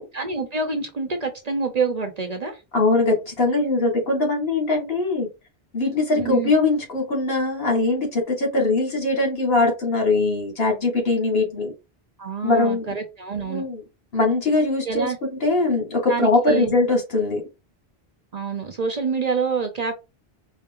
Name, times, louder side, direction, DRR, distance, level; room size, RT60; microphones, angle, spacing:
voice 1, 0.1-2.6 6.2-6.5 12.2-13.7 14.9-15.2 16.1-16.7 18.3-20.0, right 4 dB, 45° right, 5 dB, 0.8 m, -26 dB
voice 2, 2.7-5.3 5.7-11.7 12.4-12.8 13.5-13.8 14.1-17.4, left 3 dB, 70° left, 1 dB, 1.8 m, -21 dB
4.6 x 2.0 x 3.6 m, 0.26 s
omnidirectional pair, 1.1 m